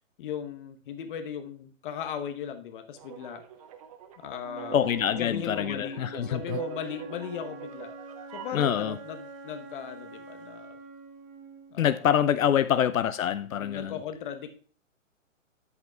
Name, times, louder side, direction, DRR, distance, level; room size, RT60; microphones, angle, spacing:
voice 1, 0.2-3.4 4.2-4.8 5.2-7.9 8.3-10.8 11.7-12.0 12.5-12.9 13.5-14.6, left 8 dB, 40° left, 1.1 m, -38 dB
sound 1, 3.0-8.6, right 8 dB, 30° right, 0.6 m, -42 dB
Wind instrument woodwind instrument, 4.4-12.4, right 3 dB, 45° right, 1.8 m, -46 dB
voice 2, 4.7-6.6 8.5-9.0 11.8-13.9, left 9 dB, 85° left, 0.6 m, -25 dB
10.5 x 8.2 x 2.3 m
hypercardioid pair, 140°, 40 cm